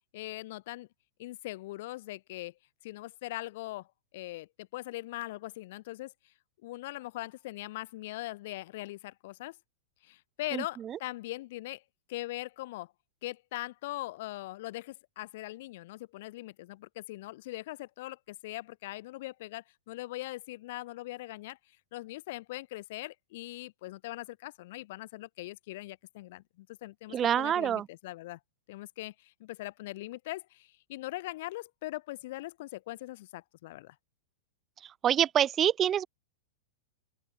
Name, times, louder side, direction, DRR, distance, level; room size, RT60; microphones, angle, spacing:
voice 1, 0.1-0.9 1.2-2.6 2.8-3.9 4.1-6.3 6.6-9.6 10.0-11.8 12.1-12.9 13.2-28.4 28.7-34.0, left 18 dB, 60° left, 1.8 m, -41 dB
voice 2, 27.1-27.9 35.0-36.1, right 10 dB, 25° right, 0.7 m, -26 dB
open air
hypercardioid pair, 120°, 0 cm